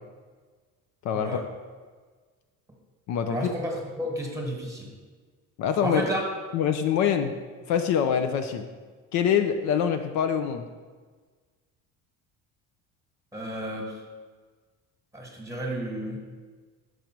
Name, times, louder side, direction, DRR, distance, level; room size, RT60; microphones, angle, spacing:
voice 1, 1.0-1.4 3.1-3.5 5.6-6.0 6.5-7.3 7.7-8.7 9.1-10.7, left 8 dB, 60° left, 7 dB, 0.5 m, -25 dB
voice 2, 3.3-3.7 4.0-5.0 5.8-6.2 13.3-14.0 15.1-16.2, equal, 10° right, 0 dB, 1.4 m, -32 dB
6.2 x 5.2 x 4.5 m, 1.5 s
cardioid pair, 135°, 31 cm